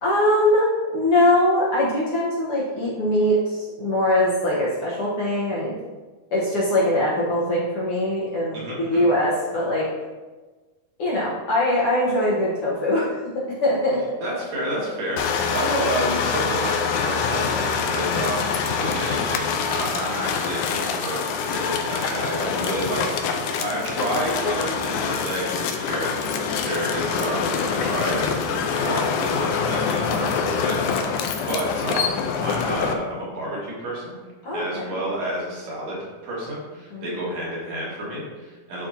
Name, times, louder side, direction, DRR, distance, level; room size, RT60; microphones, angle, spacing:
voice 1, 0.0-5.7 6.3-9.9 11.0-14.2 22.5-23.0 34.4-35.0 36.9-37.1, left 1 dB, 60° left, -6 dB, 1.6 m, -22 dB
voice 2, 8.5-9.1 14.2-21.2 21.5-34.1 34.5-38.9, right 1 dB, 60° right, -6 dB, 2.9 m, -30 dB
sound 1, 15.2-32.9, left 6 dB, 80° left, 2.0 m, -25 dB
11.5 x 4.3 x 2.8 m, 1.3 s
omnidirectional pair, 3.7 m